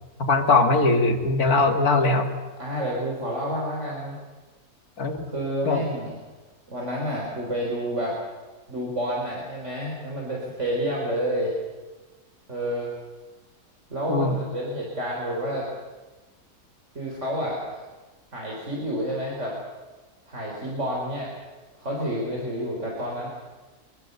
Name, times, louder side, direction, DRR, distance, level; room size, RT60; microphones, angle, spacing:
voice 1, 0.3-2.3 5.0-5.2 5.6-5.9 14.1-14.4, left 3 dB, 70° left, 5 dB, 2.7 m, -20 dB
voice 2, 2.6-4.2 5.3-6.2 6.7-8.2 8.7-11.6 12.5-12.9 13.9-15.7 16.9-17.8 18.3-19.5 20.3-21.3 21.8-23.3, equal, 50° right, -2 dB, 4.5 m, -29 dB
24.5 x 23.0 x 6.9 m, 1.2 s
omnidirectional pair, 1.6 m